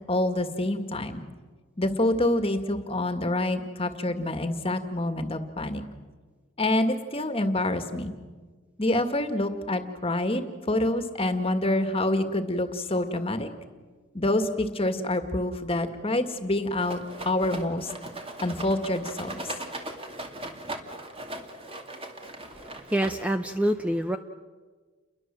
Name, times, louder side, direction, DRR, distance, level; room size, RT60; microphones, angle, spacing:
voice 1, 0.1-1.2 1.8-5.8 6.6-8.1 8.8-13.5 14.1-17.9 18.4-19.4, left 1 dB, 30° left, 8 dB, 2.0 m, -27 dB
Rattle, 16.8-23.5, right 2 dB, 25° right, 2.5 m, -39 dB
voice 2, 22.5-24.2, right 1 dB, 5° right, 7 dB, 0.8 m, -27 dB
30.0 x 22.5 x 7.7 m, 1.4 s
head